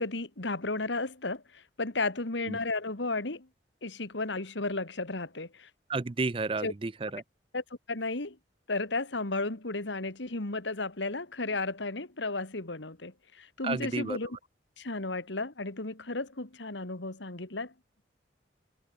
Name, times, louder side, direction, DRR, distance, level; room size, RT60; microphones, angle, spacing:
voice 1, 0.0-3.5 3.8-5.7 6.6-6.7 7.5-8.4 8.7-14.4 14.8-17.7, left 3 dB, 75° left, 2.1 m, -34 dB
voice 2, 5.9-7.2 13.6-14.2, right 3 dB, 30° right, 0.5 m, -31 dB
head